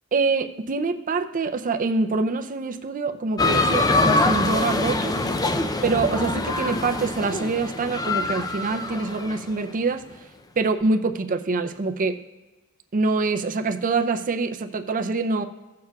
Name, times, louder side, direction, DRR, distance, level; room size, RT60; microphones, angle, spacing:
voice 1, 0.1-5.1 5.8-10.0 10.6-12.2 12.9-15.4, right 3 dB, 40° right, 7 dB, 0.5 m, -25 dB
sound 1, 3.4-9.5, left 2 dB, 15° left, 0.4 m, -24 dB
16.5 x 6.6 x 2.3 m, 1.2 s
head